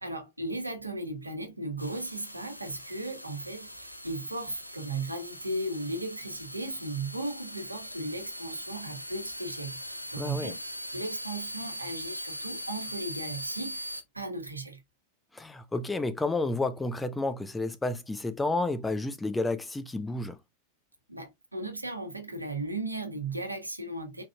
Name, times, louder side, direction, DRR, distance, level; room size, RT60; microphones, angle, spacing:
voice 1, 0.0-10.6 10.9-13.9 14.1-14.8 21.1-24.2, right 2 dB, 85° right, 1.1 m, -36 dB
sound 1, 1.8-14.0, equal, 90° left, 0.6 m, -41 dB
voice 2, 10.2-10.5 15.3-20.4, left 2 dB, 10° left, 0.6 m, -31 dB
4.6 x 3.7 x 2.2 m
figure-of-eight pair, 90°, 0 cm